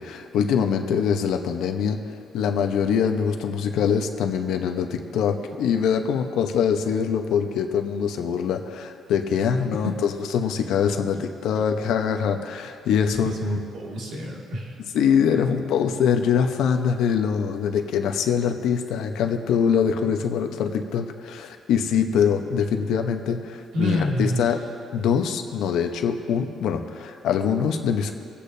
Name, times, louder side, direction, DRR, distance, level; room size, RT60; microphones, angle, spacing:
voice 1, 0.0-13.3 14.9-24.6 24.9-28.1, left 7 dB, 80° left, 5 dB, 0.9 m, -23 dB
voice 2, 13.2-14.8 15.3-15.6 23.7-24.5, left 1 dB, 70° right, -3 dB, 2.3 m, -27 dB
25.0 x 8.5 x 2.7 m, 2.4 s
cardioid pair, 150°, 0 cm